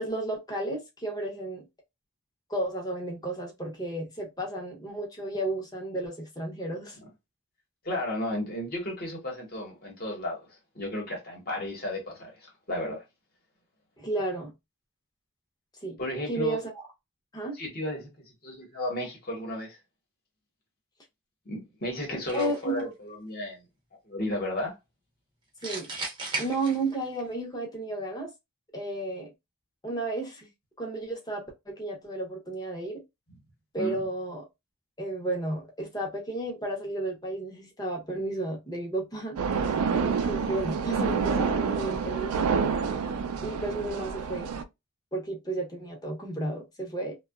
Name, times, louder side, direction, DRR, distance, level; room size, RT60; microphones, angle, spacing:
voice 1, 0.0-1.7 2.5-7.0 14.0-14.5 15.8-16.0 16.3-16.6 17.3-17.6 22.3-22.8 25.6-25.9 26.4-28.3 28.7-29.3 29.8-30.5 30.8-33.0 33.7-34.4 35.0-39.4 40.0-42.5 43.4-44.5 45.1-47.2, right 2 dB, 20° left, 0.7 m, -33 dB
voice 2, 7.8-10.4 10.7-13.0 16.0-16.6 17.5-18.1 18.4-19.8 21.5-23.6 24.1-24.7 33.8-34.0, left 1 dB, 45° left, 1.0 m, -33 dB
sound 1, 22.3-22.8 25.6-27.2, right 2 dB, 20° right, 0.6 m, -35 dB
sound 2, 39.4-44.6, right 5 dB, 90° right, 0.4 m, -28 dB
2.7 x 2.3 x 2.3 m
head